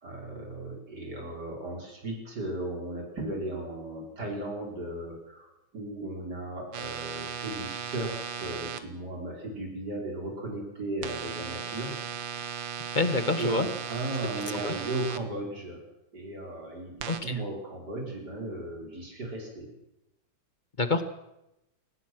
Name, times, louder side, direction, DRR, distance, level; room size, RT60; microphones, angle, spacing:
voice 1, 0.0-11.9 13.4-15.8 16.1-19.7, right 2 dB, 55° right, 0 dB, 5.7 m, -36 dB
sound 1, 6.7-8.8 11.0-15.2 17.0-17.2, right 7 dB, 75° right, 1.9 m, -37 dB
voice 2, 12.9-13.7 14.6-14.7 17.1-17.4 20.8-21.0, left 3 dB, 30° left, 9 dB, 1.2 m, -26 dB
22.5 x 19.0 x 6.3 m, 0.89 s
omnidirectional pair, 2.1 m